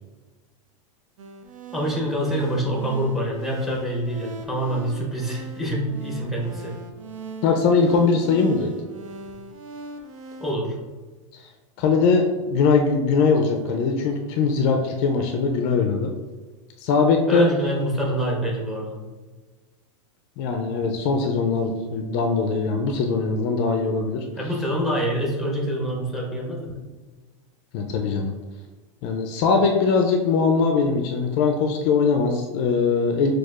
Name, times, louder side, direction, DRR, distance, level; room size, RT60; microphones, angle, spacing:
sound 1, 1.2-10.6, right 2 dB, 80° right, 0.7 m, -40 dB
voice 1, 1.7-6.7 10.4-10.8 17.3-19.0 24.4-26.7, equal, ahead, -2 dB, 0.7 m, -26 dB
voice 2, 7.4-8.7 11.8-16.1 16.8-17.5 20.4-24.3 27.7-28.3 29.0-33.3, left 4 dB, 45° left, 3 dB, 0.4 m, -21 dB
6.2 x 2.4 x 2.4 m, 1.3 s
supercardioid pair, 140°, 17 cm